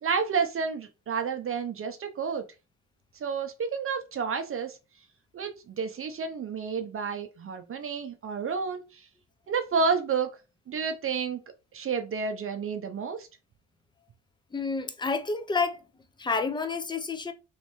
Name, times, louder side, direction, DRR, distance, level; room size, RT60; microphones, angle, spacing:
voice 1, 0.0-2.4 3.2-4.8 5.3-9.0 9.5-10.3 10.7-11.4 11.7-13.3, right 5 dB, 45° right, 0.7 m, -30 dB
voice 2, 14.5-15.8 16.2-17.3, left 4 dB, 15° left, 0.6 m, -29 dB
3.2 x 3.1 x 3.0 m
cardioid pair, 90°, 30 cm